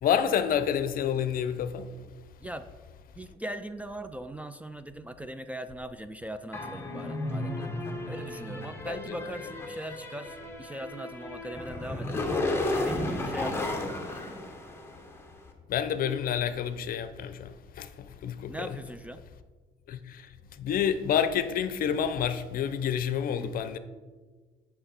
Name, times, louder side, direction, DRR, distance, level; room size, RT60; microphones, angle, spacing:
voice 1, 0.0-1.9 8.8-9.3 15.7-18.8 19.9-20.3 20.6-23.8, left 8 dB, 60° left, 0.6 m, -29 dB
voice 2, 3.2-7.7 8.1-14.2 18.5-19.2 23.3-23.7, right 1 dB, 10° right, 0.3 m, -40 dB
sound 1, 6.5-15.2, left 2 dB, 15° left, 1.1 m, -33 dB
8.7 x 5.6 x 4.3 m
cardioid pair, 110°, 17 cm